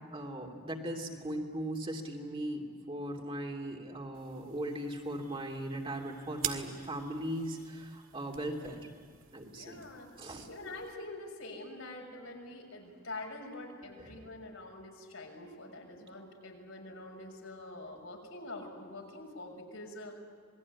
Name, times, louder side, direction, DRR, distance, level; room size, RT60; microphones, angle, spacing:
voice 1, 0.1-8.9 9.3-9.8 10.2-10.5 14.0-14.2, right 1 dB, 25° right, 1 dB, 2.9 m, -38 dB
sound 1, 4.1-10.9, right 10 dB, 70° right, 2.1 m, -46 dB
voice 2, 9.5-10.1 10.5-20.2, left 2 dB, 75° left, 1 dB, 6.5 m, -45 dB
27.0 x 21.0 x 9.7 m, 2.1 s
head